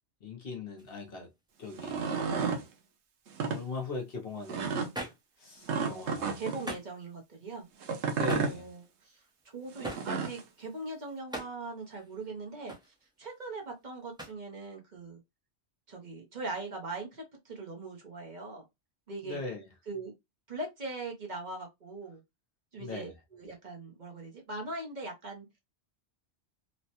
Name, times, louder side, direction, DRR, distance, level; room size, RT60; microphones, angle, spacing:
voice 1, 0.2-1.3 1.6-2.6 3.5-4.8 5.4-6.4 8.1-8.6 19.2-19.7 22.8-23.1, left 3 dB, 60° left, 1.0 m, -40 dB
sound 1, 0.8-1.5 4.9-6.1 6.4-7.0 7.6-7.7 8.1-13.8 14.1-14.3, right 1 dB, 5° right, 0.7 m, -45 dB
sound 2, 1.7-2.6 3.3-3.6 4.5-4.9 5.7-6.6 7.8-8.6 9.8-10.4, right 5 dB, 80° right, 0.9 m, -32 dB
voice 2, 5.4-7.7 7.9-15.2 15.9-18.6 19.1-19.4 19.9-20.1 20.5-22.2 22.7-25.6, right 3 dB, 45° right, 0.9 m, -41 dB
3.1 x 2.1 x 2.8 m
omnidirectional pair, 1.1 m